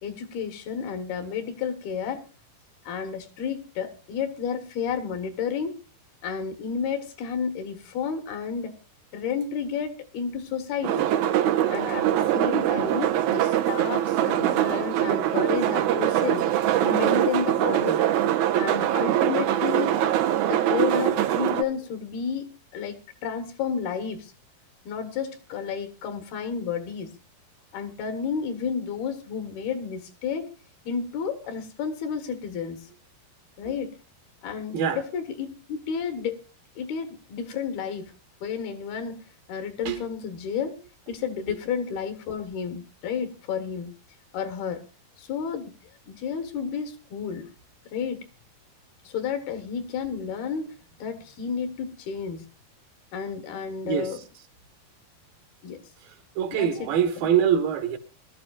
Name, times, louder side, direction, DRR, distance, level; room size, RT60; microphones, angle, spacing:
voice 1, 0.0-2.2 2.8-5.7 6.2-8.7 9.1-11.1 11.7-16.4 16.8-18.0 18.6-20.0 20.4-24.3 24.9-27.2 27.7-30.5 30.9-32.8 33.6-34.0 34.4-36.4 36.8-38.1 38.4-39.2 39.5-40.7 41.1-43.9 44.3-44.8 45.2-45.7 46.1-47.5 47.9-48.3 49.0-52.4 53.1-54.2 55.6-55.8 56.5-56.9, left 7 dB, 70° left, 3.2 m, -31 dB
sound 1, 10.8-21.6, right 11 dB, 90° right, 1.7 m, -23 dB
voice 2, 56.4-58.0, right 8 dB, 70° right, 2.7 m, -23 dB
22.5 x 13.0 x 2.4 m
omnidirectional pair, 4.7 m